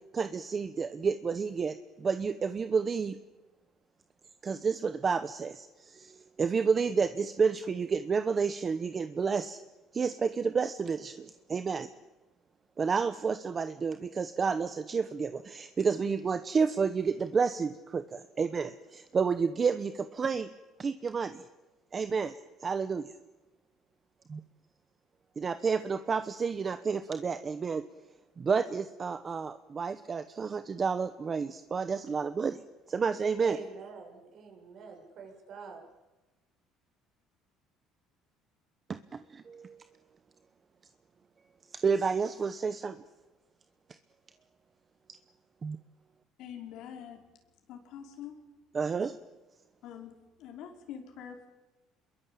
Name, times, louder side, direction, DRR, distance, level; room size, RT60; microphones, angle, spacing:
voice 1, 0.1-3.2 4.4-9.6 9.9-11.9 12.8-20.5 20.8-21.4 21.9-23.1 24.3-24.4 25.4-27.8 28.4-32.6 32.9-33.6 38.9-39.8 41.7-43.0 45.6-45.8 48.7-49.1, right 5 dB, 30° right, 11 dB, 1.0 m, -30 dB
voice 2, 33.4-35.8, right 5 dB, 55° right, 3 dB, 7.1 m, -45 dB
voice 3, 46.4-47.2 47.7-48.4 49.8-50.1 50.4-51.5, left 9 dB, 70° left, 3 dB, 5.2 m, -44 dB
27.5 x 22.0 x 8.6 m, 1.1 s
cardioid pair, 135°, 0 cm